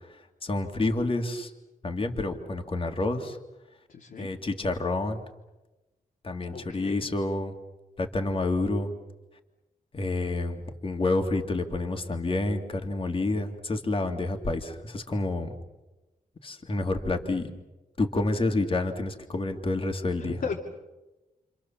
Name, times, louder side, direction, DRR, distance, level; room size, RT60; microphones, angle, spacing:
voice 1, 0.4-1.5 1.8-3.4 4.2-5.2 6.2-7.5 8.0-8.9 9.9-15.5 16.4-17.5 18.0-20.4, left 2 dB, 35° left, 4 dB, 2.3 m, -28 dB
voice 2, 3.9-4.3 6.5-7.1 20.2-20.6, left 5 dB, 75° left, 0 dB, 2.8 m, -35 dB
29.5 x 25.5 x 7.2 m, 1.1 s
wide cardioid pair, 135°, 15 cm